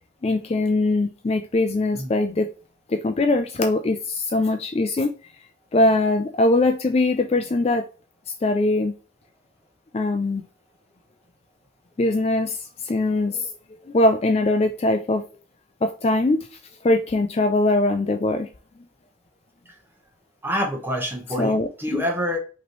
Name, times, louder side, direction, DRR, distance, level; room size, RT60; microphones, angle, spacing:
voice 1, 0.2-2.5 2.9-5.1 5.7-7.9 8.4-8.9 9.9-10.4 12.0-12.6 12.8-13.5 13.9-15.2 15.8-16.5 16.8-18.5 21.4-22.0, left 2 dB, 30° left, 0.3 m, -21 dB
voice 2, 20.4-22.4, equal, 10° right, 1.0 m, -26 dB
5.3 x 3.1 x 3.0 m
head